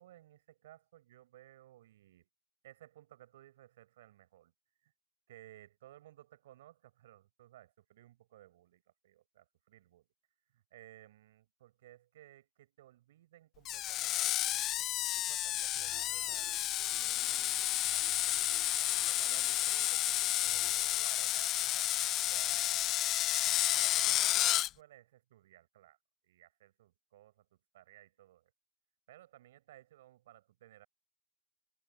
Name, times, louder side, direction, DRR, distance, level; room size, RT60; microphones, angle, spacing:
voice 1, 0.0-2.3 2.6-4.5 4.8-4.9 5.3-10.1 10.5-14.9 15.1-16.5 16.9-22.9 23.7-26.0 26.2-27.5 27.7-28.5 29.1-30.9, right 14 dB, 85° right, 5.4 m, -58 dB
Screech, 13.6-24.7, left 14 dB, 45° left, 0.4 m, -31 dB
sound 1, 15.8-21.5, right 9 dB, 35° right, 4.6 m, -58 dB
supercardioid pair, 110°, 0 cm